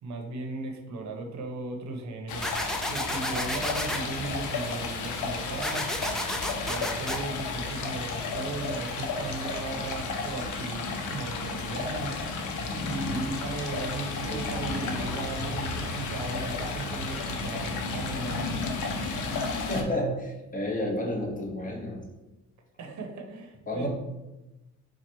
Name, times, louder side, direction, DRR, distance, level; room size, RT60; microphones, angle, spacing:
voice 1, 0.0-5.9 6.2-12.5 12.8-18.5 22.8-23.9, right 3 dB, 65° right, 3 dB, 0.8 m, -37 dB
Stream, 2.3-19.8, left 3 dB, 80° left, 0.7 m, -32 dB
sound 1, 2.4-4.0 5.6-7.2, equal, ahead, 0.3 m, -32 dB
voice 2, 19.3-22.0 23.7-23.9, left 1 dB, 25° left, -1 dB, 1.0 m, -31 dB
4.3 x 2.3 x 4.4 m, 1.0 s
cardioid pair, 90°, 30 cm